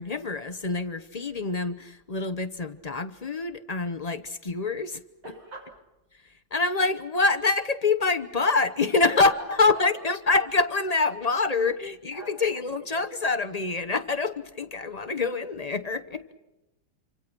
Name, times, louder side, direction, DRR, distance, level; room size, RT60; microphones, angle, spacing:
voice 1, 0.0-5.0 6.5-16.3, left 3 dB, 40° left, 7 dB, 0.6 m, -26 dB
voice 2, 5.2-5.7 9.1-10.0 11.6-11.7 12.1-12.9, equal, 90° right, 1 dB, 7.6 m, -40 dB
27.0 x 26.0 x 6.1 m, 0.99 s
omnidirectional pair, 2.1 m